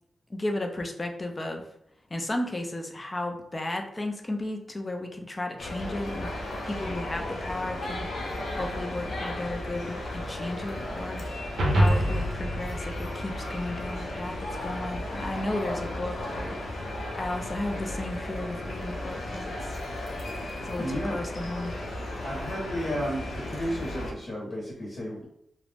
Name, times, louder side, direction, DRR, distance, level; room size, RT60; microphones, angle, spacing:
voice 1, 0.3-1.6 2.1-6.3 6.6-8.1 8.5-11.2 11.7-16.6 17.2-19.7 20.6-20.8 21.1-21.7, left 1 dB, 20° left, 4 dB, 0.3 m, -34 dB
sound 1, 5.6-24.1, left 1 dB, 80° left, 0.5 m, -35 dB
sound 2, 11.6-14.1, equal, 80° right, 0.6 m, -26 dB
voice 2, 20.8-21.2 22.2-25.2, equal, 40° left, -5 dB, 0.8 m, -33 dB
2.4 x 2.0 x 3.2 m, 0.75 s
wide cardioid pair, 170°, 0 cm